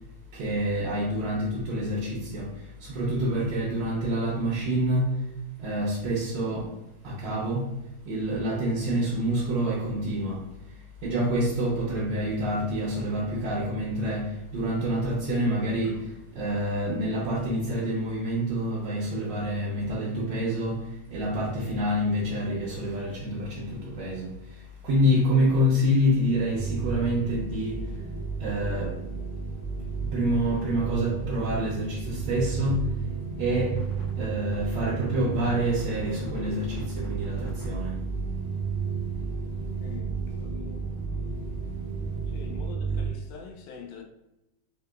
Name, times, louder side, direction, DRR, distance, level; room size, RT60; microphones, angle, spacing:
voice 1, 0.3-2.5 2.8-5.2 5.6-6.7 7.0-7.7 8.1-10.4 11.0-16.1 16.3-20.8 21.1-24.3 24.8-27.8 28.4-29.0 30.0-32.9 33.4-33.8 34.2-38.0, equal, 80° right, 1.3 m, -27 dB
sound 1, 26.5-43.1, right 5 dB, 50° left, 0.6 m, -33 dB
voice 2, 39.8-40.9 42.3-44.0, left 5 dB, 90° left, 1.3 m, -45 dB
3.6 x 2.8 x 2.2 m
omnidirectional pair, 2.0 m